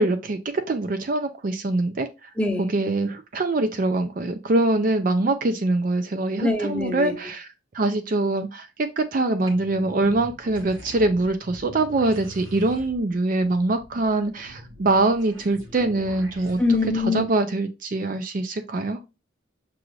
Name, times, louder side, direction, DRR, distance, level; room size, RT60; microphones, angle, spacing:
voice 1, 0.0-2.3 2.6-7.5 7.7-16.6 16.9-19.0, right 2 dB, 45° right, 0.4 m, -24 dB
voice 2, 2.4-2.7 6.4-7.2 16.6-17.3, left 3 dB, 5° left, 0.7 m, -23 dB
sound 1, 9.5-16.9, equal, 80° right, 1.3 m, -42 dB
6.1 x 2.5 x 3.1 m
head